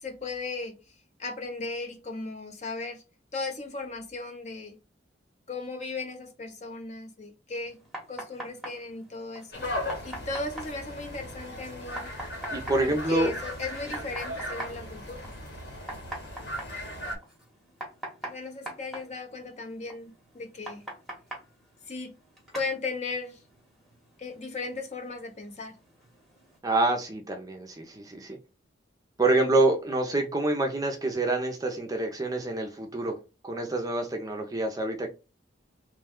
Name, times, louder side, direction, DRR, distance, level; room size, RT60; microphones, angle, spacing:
voice 1, 0.0-0.9 1.2-3.0 3.3-4.8 5.5-7.8 8.1-9.7 10.0-12.1 12.8-15.3 18.2-20.9 21.9-22.2 22.5-23.4 24.2-25.7, left 3 dB, 35° left, 0.5 m, -36 dB
sound 1, 7.5-26.6, right 1 dB, ahead, 0.8 m, -45 dB
sound 2, 9.5-17.1, equal, 55° left, 1.1 m, -37 dB
voice 2, 12.5-13.3 26.6-28.4 29.2-33.2 33.4-35.1, right 2 dB, 20° right, 0.5 m, -27 dB
3.0 x 2.2 x 3.5 m
head